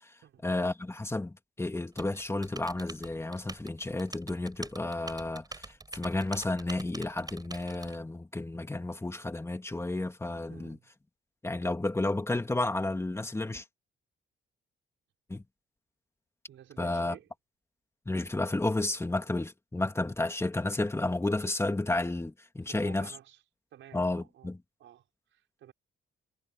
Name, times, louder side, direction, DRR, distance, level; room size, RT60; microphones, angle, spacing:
voice 1, 0.4-10.8 11.4-13.6 15.3-15.4 16.8-17.2 18.1-23.1 23.9-24.6, left 2 dB, 15° left, 2.1 m, -32 dB
Typing, 2.0-8.0, right 3 dB, 20° right, 5.3 m, -45 dB
voice 2, 10.5-10.9 16.5-17.3 22.6-23.4 23.7-24.5 24.8-25.7, right 11 dB, 75° right, 6.1 m, -52 dB
cardioid pair, 90°, 20 cm